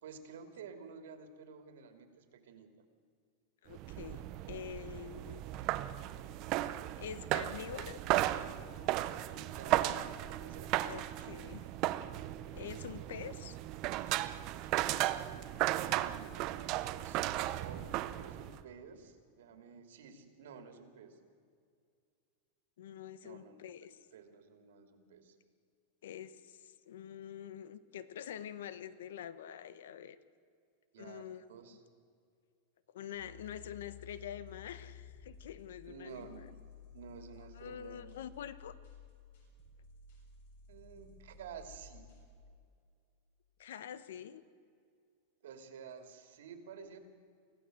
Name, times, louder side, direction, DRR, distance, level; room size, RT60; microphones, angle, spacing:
voice 1, 0.0-2.7 9.3-11.2 15.7-21.2 23.2-23.6 24.1-25.4 30.9-31.8 35.9-36.5 36.9-38.1 40.7-42.1 45.4-47.0, right 6 dB, 75° right, 7 dB, 2.7 m, -52 dB
voice 2, 3.6-5.4 7.0-8.0 10.8-11.7 12.5-13.6 22.8-24.0 26.0-30.2 31.0-31.5 32.9-36.4 37.6-38.7 43.6-44.4, left 9 dB, 90° left, 15 dB, 1.1 m, -46 dB
sound 1, 3.7-18.6, right 15 dB, 30° right, 0.6 m, -35 dB
sound 2, 33.1-42.3, left 6 dB, 70° left, 7.3 m, -54 dB
24.5 x 15.5 x 7.8 m, 2.2 s
supercardioid pair, 180°, 0 cm